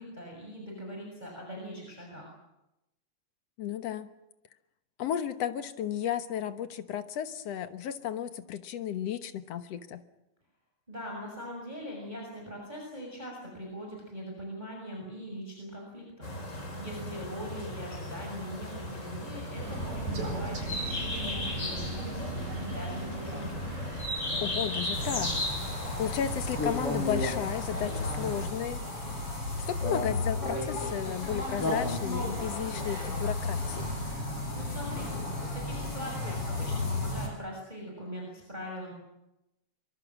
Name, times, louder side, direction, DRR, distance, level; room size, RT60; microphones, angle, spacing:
voice 1, 0.0-2.3 10.9-23.7 34.5-38.9, equal, 10° right, -1 dB, 6.2 m, -41 dB
voice 2, 3.6-4.1 5.0-10.0 24.4-25.4 26.0-28.8 29.7-33.9, left 9 dB, 60° left, 10 dB, 2.1 m, -33 dB
sound 1, 16.2-28.5, left 1 dB, 20° left, 4.7 m, -36 dB
Crow, 19.6-25.3, right 2 dB, 60° right, 6.4 m, -39 dB
sound 2, 24.9-37.3, left 2 dB, 45° left, 6.9 m, -33 dB
24.0 x 23.5 x 7.4 m, 0.91 s
omnidirectional pair, 3.7 m